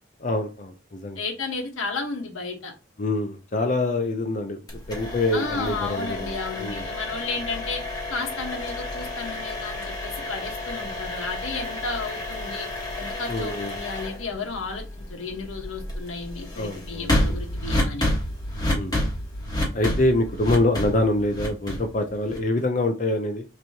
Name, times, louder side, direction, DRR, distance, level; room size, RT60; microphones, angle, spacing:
voice 1, 0.2-1.2 3.0-4.6 4.9-6.8 13.3-13.7 16.6-17.4 18.7-19.0 19.7-23.4, left 2 dB, 40° left, 0.5 m, -25 dB
voice 2, 1.2-2.7 5.3-7.8 8.1-12.7 13.0-18.0, left 4 dB, 85° left, 1.3 m, -33 dB
sound 1, 4.7-22.6, left 1 dB, 20° left, 1.4 m, -30 dB
6.2 x 3.0 x 2.8 m
head